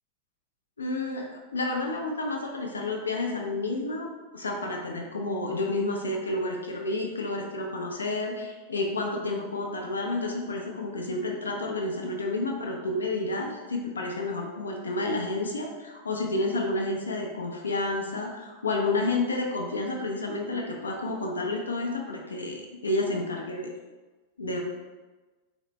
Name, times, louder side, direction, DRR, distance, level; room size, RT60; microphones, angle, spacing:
voice 1, 0.8-23.7 24.4-24.6, left 2 dB, 75° left, 1 dB, 0.4 m, -30 dB
3.9 x 2.0 x 3.0 m, 1.2 s
figure-of-eight pair, 90°, 0 cm